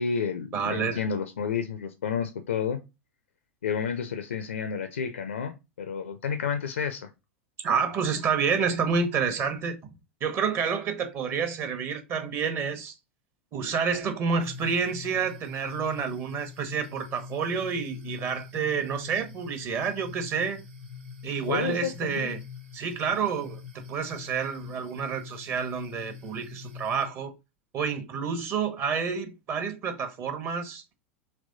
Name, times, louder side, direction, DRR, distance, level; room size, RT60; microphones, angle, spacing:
voice 1, 0.0-2.8 3.6-7.1 21.5-22.3, left 6 dB, 70° left, 0.4 m, -30 dB
voice 2, 0.5-1.0 7.6-9.8 10.2-12.9 13.5-20.6 21.2-22.4 22.7-23.6 23.9-27.3 27.7-30.8, right 6 dB, 35° right, 0.9 m, -29 dB
sound 1, 14.4-27.1, left 6 dB, 65° right, 1.2 m, -44 dB
3.3 x 3.0 x 3.9 m
figure-of-eight pair, 90°, 7 cm